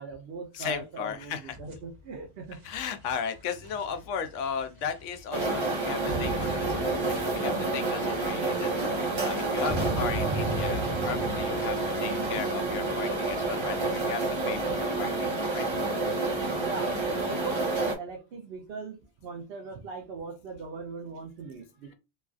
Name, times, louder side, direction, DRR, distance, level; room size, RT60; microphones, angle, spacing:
voice 1, 0.0-2.6 16.6-17.0 17.3-21.9, right 4 dB, 60° right, 0.8 m, -40 dB
voice 2, 0.5-1.6 2.6-8.7 9.2-15.8, left 7 dB, 90° left, 0.9 m, -36 dB
sound 1, 1.5-14.8, right 1 dB, 80° right, 1.4 m, -38 dB
sound 2, 5.3-18.0, right 2 dB, 30° right, 0.6 m, -29 dB
3.1 x 2.4 x 2.3 m
omnidirectional pair, 1.2 m